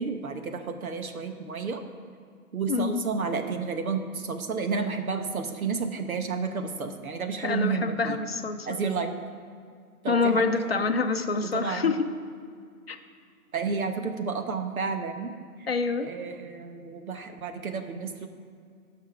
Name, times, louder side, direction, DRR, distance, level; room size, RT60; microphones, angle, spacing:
voice 1, 0.0-1.8 2.5-8.2 8.6-9.1 10.0-10.9 11.4-12.0 13.5-15.3 15.6-15.7 16.0-18.3, right 5 dB, 65° right, 6 dB, 1.1 m, -31 dB
voice 2, 2.7-3.0 7.4-8.8 10.1-12.1 12.9-13.0 15.7-16.1, left 4 dB, 45° left, 6 dB, 0.6 m, -26 dB
8.8 x 5.8 x 5.9 m, 2.2 s
hypercardioid pair, 180°, 45 cm